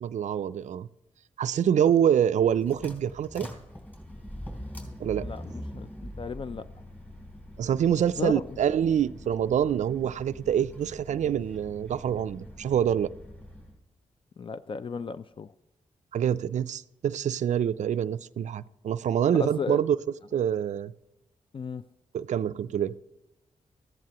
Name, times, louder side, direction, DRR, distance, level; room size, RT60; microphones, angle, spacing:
voice 1, 0.0-0.9 1.4-3.5 5.0-5.3 7.6-13.1 16.1-20.0 20.3-20.9 22.1-23.0, right 9 dB, 70° right, 16 dB, 0.4 m, -26 dB
sound 1, 2.3-13.8, equal, 15° left, 3.3 m, -43 dB
voice 2, 5.2-5.9 6.2-6.7 8.2-8.5 14.4-15.5 19.4-19.8 21.5-21.8, left 5 dB, 40° left, 13 dB, 0.4 m, -34 dB
14.5 x 10.5 x 2.9 m, 0.94 s
cardioid pair, 70°, 13 cm